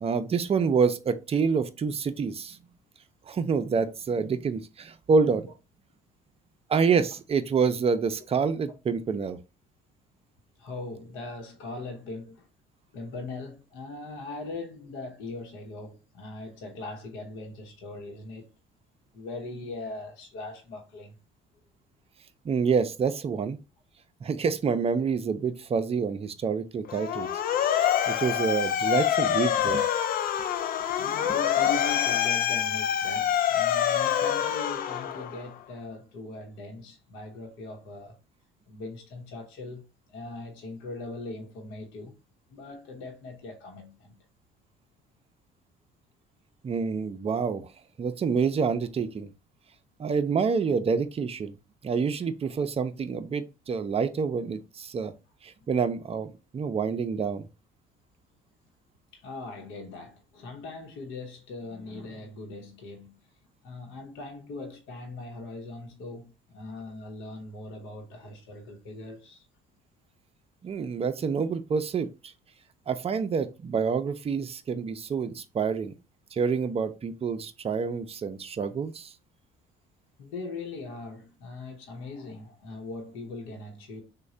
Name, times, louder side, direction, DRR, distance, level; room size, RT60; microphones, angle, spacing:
voice 1, 0.0-2.6 3.3-5.5 6.7-9.4 22.4-23.6 24.2-27.3 27.6-29.9 31.2-31.3 46.6-47.7 48.0-49.3 50.0-51.5 51.8-55.1 55.4-57.5 70.6-72.3 72.9-75.9 76.3-79.1, right 5 dB, 30° right, 0.5 m, -27 dB
voice 2, 10.6-12.5 12.9-18.5 19.1-21.2 31.0-38.2 38.7-42.2 42.5-44.2 59.1-63.2 63.6-69.4 80.2-84.0, left 3 dB, 75° left, 0.9 m, -40 dB
Motor vehicle (road) / Siren, 26.9-35.5, left 10 dB, 50° left, 0.4 m, -26 dB
3.1 x 2.2 x 3.7 m
hypercardioid pair, 65°, 20 cm